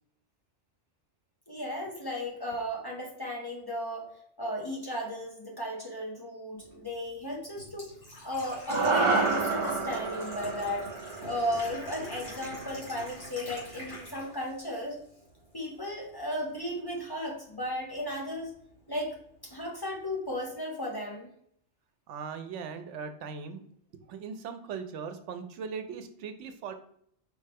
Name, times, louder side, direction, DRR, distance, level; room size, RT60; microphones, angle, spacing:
voice 1, 1.5-4.1 4.4-7.9 8.2-10.9 11.2-15.0 15.5-18.5 18.9-19.2 19.4-21.3, equal, 20° left, -2 dB, 0.9 m, -35 dB
Engine / Trickle dribble / Fill (with liquid), 6.6-14.6 14.9-15.9 16.2-16.3 18.2-18.3 18.4-18.8 19.2-19.3 19.5-19.6, equal, 45° left, 2.0 m, -42 dB
sound 1, 8.7-13.1, right 3 dB, 50° right, 0.3 m, -30 dB
voice 2, 22.1-23.6 24.1-26.7, right 6 dB, 85° right, 8 dB, 0.9 m, -39 dB
4.8 x 3.2 x 3.4 m, 0.68 s
omnidirectional pair, 1.2 m